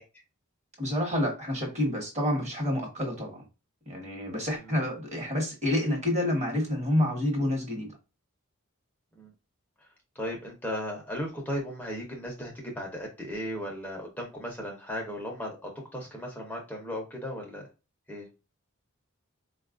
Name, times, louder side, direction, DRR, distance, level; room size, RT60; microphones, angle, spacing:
voice 1, 0.8-3.5 3.9-8.0, left 1 dB, 35° right, 2 dB, 1.1 m, -28 dB
voice 2, 10.2-17.7 18.1-18.3, equal, 5° left, -1 dB, 0.7 m, -36 dB
4.1 x 2.3 x 2.4 m, 0.29 s
head